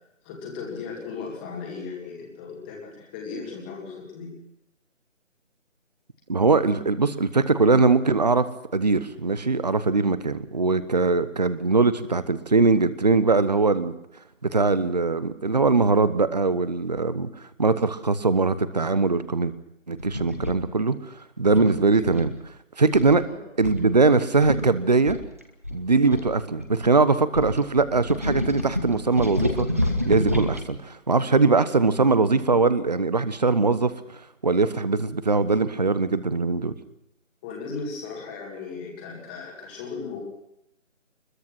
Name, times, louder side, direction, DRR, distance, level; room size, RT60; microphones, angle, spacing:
voice 1, 0.2-4.3 21.9-22.0 23.2-23.4 26.1-26.3 37.4-40.2, left 5 dB, 5° left, -1 dB, 2.0 m, -36 dB
voice 2, 6.3-8.5 8.7-13.9 14.5-17.3 17.6-19.5 19.9-21.0 21.4-22.3 22.8-23.2 23.6-25.2 25.7-29.7 30.1-33.9 34.4-36.7, right 3 dB, 35° right, 14 dB, 1.1 m, -21 dB
sound 1, 20.0-20.6 21.5-22.4 22.9-23.2 23.6-23.8 24.1-24.2 24.4-24.6 25.1-26.9 27.3-30.6, left 1 dB, 10° right, 0.9 m, -28 dB
24.0 x 21.5 x 6.1 m, 0.82 s
figure-of-eight pair, 165°, 39 cm